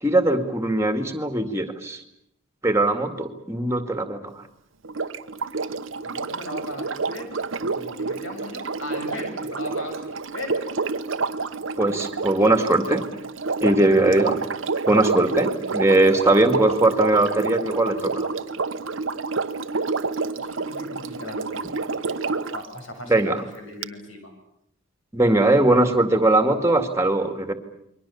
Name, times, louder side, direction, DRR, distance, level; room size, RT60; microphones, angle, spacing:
voice 1, 0.0-2.0 2.6-4.2 11.8-13.0 13.6-14.4 14.9-18.3 23.0-23.4 25.1-27.5, right 2 dB, 15° right, 7 dB, 2.2 m, -20 dB
Sink (filling or washing), 4.8-22.7 23.8-23.9, right 4 dB, 70° right, 1.0 m, -29 dB
voice 2, 6.0-7.3 7.7-10.6 20.4-24.3, left 1 dB, 70° left, 4 dB, 7.6 m, -38 dB
29.0 x 23.0 x 7.1 m, 0.76 s
head